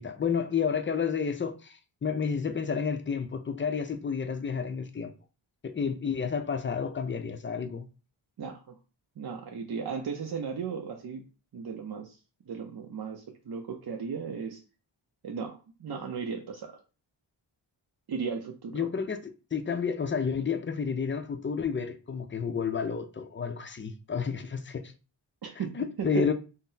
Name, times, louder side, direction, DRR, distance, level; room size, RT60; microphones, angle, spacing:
voice 1, 0.0-5.1 5.6-7.9 18.7-19.2 19.5-24.9 25.8-26.3, left 6 dB, 25° left, 0.3 m, -30 dB
voice 2, 8.4-8.8 9.2-11.2 11.5-12.2 12.5-14.6 15.2-16.8 18.1-18.9 25.4-26.3, right 6 dB, 50° right, 0.6 m, -36 dB
3.6 x 2.0 x 2.7 m
cardioid pair, 55°, 49 cm